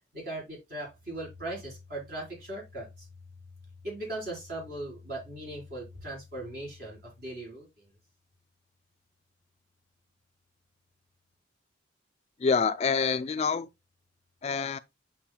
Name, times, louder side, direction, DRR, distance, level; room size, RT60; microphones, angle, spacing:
voice 1, 0.1-3.1 3.8-7.7, right 1 dB, 50° right, 4.3 m, -39 dB
voice 2, 12.4-13.7 14.4-14.8, left 5 dB, 35° left, 0.3 m, -26 dB
8.5 x 6.2 x 2.2 m
head